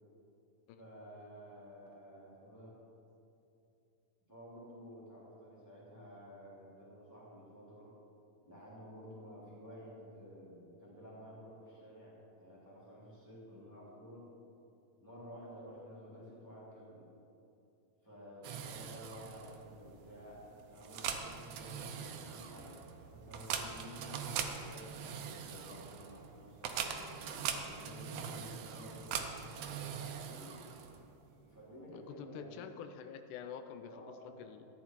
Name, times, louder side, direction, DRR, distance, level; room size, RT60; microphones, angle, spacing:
voice 1, 0.8-2.8 4.3-7.9 8.4-14.3 15.0-17.1 18.0-22.7 23.1-27.1 27.5-30.6 31.4-32.7 33.9-34.4, equal, 5° right, -8 dB, 2.6 m, -52 dB
sound 1, 18.4-31.2, right 7 dB, 70° right, 1.7 m, -42 dB
voice 2, 31.9-34.7, left 7 dB, 90° left, 8 dB, 2.2 m, -47 dB
14.0 x 9.6 x 4.5 m, 2.7 s
omnidirectional pair, 3.5 m